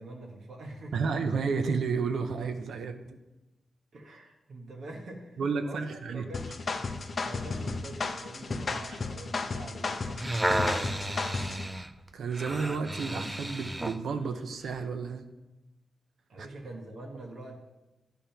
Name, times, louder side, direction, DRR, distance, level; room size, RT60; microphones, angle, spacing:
voice 1, 0.0-1.0 3.9-6.5 7.2-11.3 16.3-17.6, right 1 dB, 65° right, 0 dB, 1.0 m, -44 dB
voice 2, 0.9-3.2 5.4-6.2 12.1-15.3 16.4-16.5, right 5 dB, 85° right, 7 dB, 0.6 m, -31 dB
sound 1, 6.3-11.7, left 4 dB, 40° left, 0.5 m, -34 dB
sound 2, 9.9-14.0 14.7-14.8, right 1 dB, 10° right, 0.4 m, -32 dB
10.5 x 3.6 x 5.7 m, 1.0 s
wide cardioid pair, 125°, 0 cm